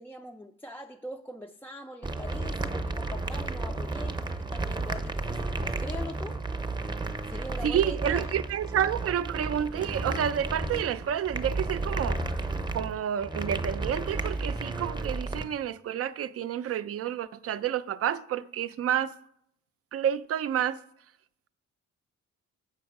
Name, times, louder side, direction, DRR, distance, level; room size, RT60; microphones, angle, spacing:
voice 1, 0.0-6.4 7.3-8.4, left 1 dB, 5° left, 0.4 m, -42 dB
sound 1, 2.0-15.4, right 2 dB, 15° right, 0.7 m, -32 dB
voice 2, 7.6-12.5 12.7-19.1 19.9-20.8, right 9 dB, 50° right, 0.5 m, -29 dB
7.1 x 6.0 x 4.7 m
cardioid pair, 90°, 30 cm